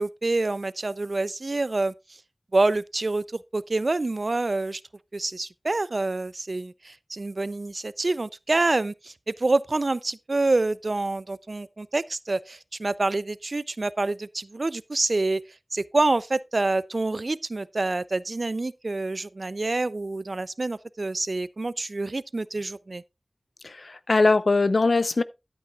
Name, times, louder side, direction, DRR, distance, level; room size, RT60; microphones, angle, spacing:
voice 1, 0.0-1.9 2.5-3.2 3.5-4.8 5.1-9.1 9.4-15.4 15.7-23.0, right 2 dB, 65° right, 0.4 m, -27 dB
voice 2, 23.6-25.2, left 3 dB, 85° left, 0.6 m, -21 dB
12.5 x 8.5 x 2.3 m
wide cardioid pair, 60°, 0 cm